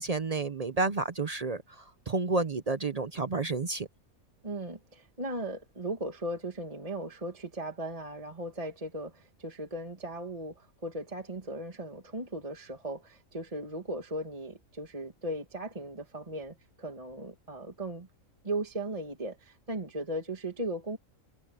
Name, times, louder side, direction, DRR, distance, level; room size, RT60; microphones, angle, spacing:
voice 1, 0.0-3.9, right 3 dB, 40° right, 0.5 m, -30 dB
voice 2, 4.4-18.1 18.4-21.0, right 1 dB, 25° right, 1.9 m, -37 dB
omnidirectional pair, 1.4 m